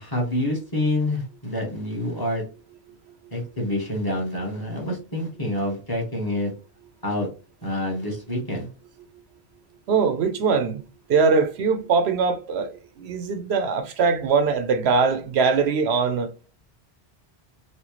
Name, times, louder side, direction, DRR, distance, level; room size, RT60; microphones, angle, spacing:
voice 1, 0.0-2.4 3.3-6.5 7.0-7.3 7.6-8.7, left 1 dB, 20° left, 1.3 m, -27 dB
voice 2, 9.9-10.8 11.1-12.7 13.0-16.3, right 5 dB, 85° right, 0.9 m, -21 dB
4.2 x 2.3 x 3.0 m
omnidirectional pair, 1.1 m